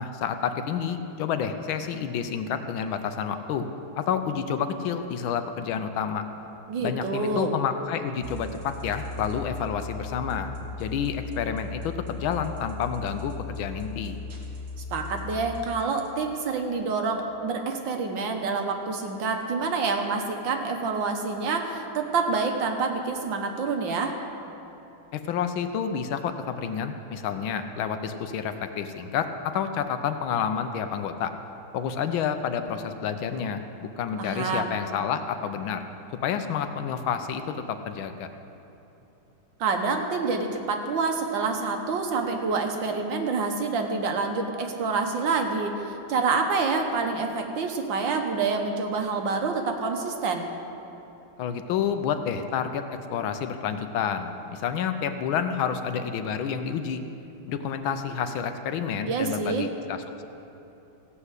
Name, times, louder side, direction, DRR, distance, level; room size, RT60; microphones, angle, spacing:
voice 1, 0.0-3.7 4.0-6.2 6.8-10.5 10.8-14.2 25.1-31.3 31.7-35.8 36.2-38.3 51.4-52.8 53.1-57.0 57.5-60.2, left 7 dB, 75° left, 8 dB, 1.4 m, -29 dB
voice 2, 6.7-7.5 14.8-24.1 34.2-34.8 39.6-50.5 59.0-59.7, right 4 dB, 65° right, 4 dB, 1.6 m, -27 dB
sound 1, 8.2-16.1, left 3 dB, 45° right, 2.0 m, -38 dB
15.5 x 5.7 x 8.0 m, 2.9 s
omnidirectional pair, 2.3 m